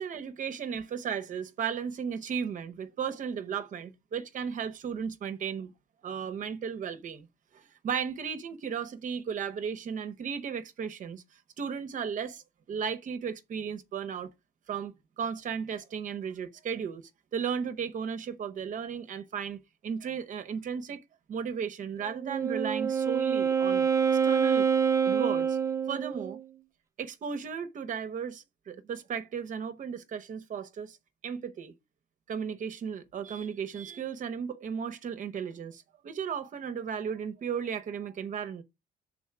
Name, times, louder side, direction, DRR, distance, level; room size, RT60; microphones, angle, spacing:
voice 1, 0.0-5.7 6.0-7.3 7.5-11.2 11.6-14.3 14.7-21.0 21.3-23.9 24.2-24.7 25.0-25.6 25.9-26.4 27.0-31.0 31.2-31.7 32.3-38.6, right 7 dB, 50° right, 0.9 m, -35 dB
Wind instrument woodwind instrument, 22.1-26.4, right 7 dB, 15° right, 0.5 m, -26 dB
6.2 x 4.0 x 5.8 m
cardioid pair, 110°, 17 cm